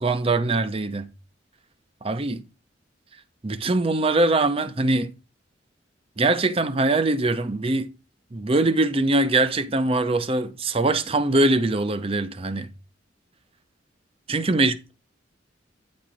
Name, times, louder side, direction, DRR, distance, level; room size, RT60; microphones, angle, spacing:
voice 1, 0.0-1.1 2.0-2.4 3.4-5.1 6.2-7.9 8.3-12.7 14.3-14.9, right 2 dB, 30° right, 0.6 m, -22 dB
9.3 x 4.3 x 4.9 m
head